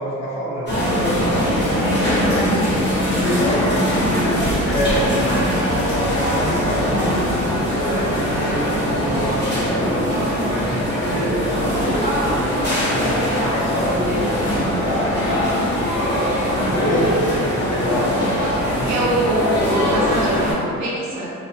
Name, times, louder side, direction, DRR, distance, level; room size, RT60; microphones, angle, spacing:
voice 1, 0.0-1.6 1.9-2.5 3.0-16.1 16.6-19.1, equal, 60° left, -6 dB, 0.9 m, -27 dB
sound 1, 0.7-20.5, equal, 35° left, 1.3 m, -21 dB
voice 2, 2.0-2.6 18.9-21.3, right 2 dB, 65° right, -5 dB, 0.8 m, -24 dB
3.1 x 2.0 x 2.8 m, 2.4 s
cardioid pair, 90°, 30 cm